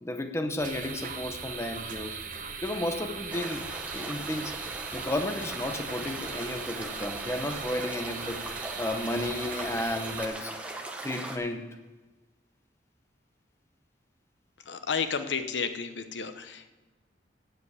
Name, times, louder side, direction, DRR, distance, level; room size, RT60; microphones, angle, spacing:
voice 1, 0.0-2.2 2.6-8.4 8.8-10.5 11.0-11.7, left 1 dB, 15° left, 6 dB, 0.7 m, -33 dB
sound 1, 0.6-10.3, right 5 dB, 45° right, 1.0 m, -39 dB
sound 2, 3.3-11.4, right 2 dB, 10° right, 1.0 m, -39 dB
voice 2, 14.6-16.7, left 6 dB, 90° left, 9 dB, 0.8 m, -32 dB
8.9 x 7.5 x 8.2 m, 1.2 s
head